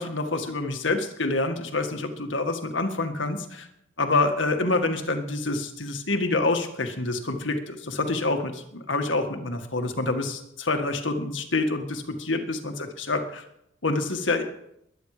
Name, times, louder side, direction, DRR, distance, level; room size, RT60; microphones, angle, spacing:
voice 1, 0.0-3.7 4.0-12.7 13.1-13.4 13.8-14.4, left 2 dB, 80° left, 5 dB, 1.9 m, -27 dB
21.5 x 9.7 x 5.1 m, 0.76 s
head